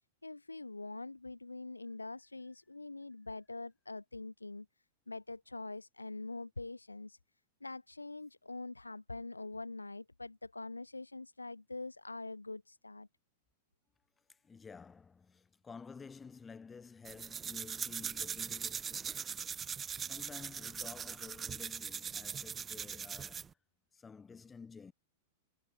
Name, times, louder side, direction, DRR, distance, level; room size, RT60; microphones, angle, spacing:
voice 1, 0.2-4.7 5.1-7.2 7.6-13.1, left 2 dB, 85° left, 0.4 m, -44 dB
voice 2, 14.3-19.3 20.0-23.5 23.9-24.9, left 5 dB, 15° left, 1.5 m, -52 dB
sound 1, 17.0-23.5, right 7 dB, 20° right, 1.0 m, -41 dB
figure-of-eight pair, 95°, 0 cm